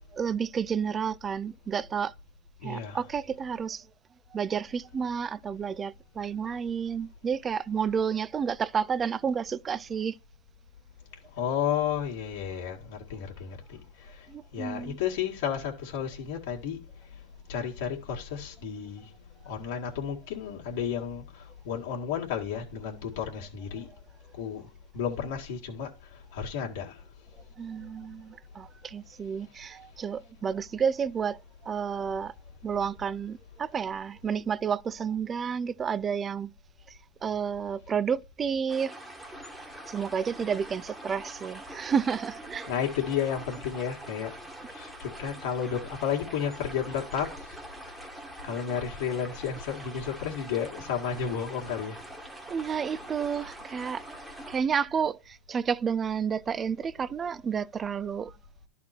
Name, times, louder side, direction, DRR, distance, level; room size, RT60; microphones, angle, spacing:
voice 1, 0.1-2.1 2.6-3.9 4.3-10.2 14.3-15.0 27.6-32.3 32.6-36.5 36.9-38.9 39.9-42.7 52.5-54.2 54.5-58.3, right 7 dB, 20° right, 0.3 m, -31 dB
voice 2, 2.6-3.0 11.4-13.8 14.5-16.8 17.5-19.1 19.5-21.2 21.6-23.9 24.4-24.7 24.9-25.9 26.3-26.9 42.7-44.3 44.7-47.3 48.4-52.0, left 8 dB, 70° left, 2.0 m, -32 dB
sound 1, 38.7-54.6, right 1 dB, 5° right, 1.3 m, -44 dB
11.5 x 4.1 x 4.4 m
supercardioid pair, 130°, 0 cm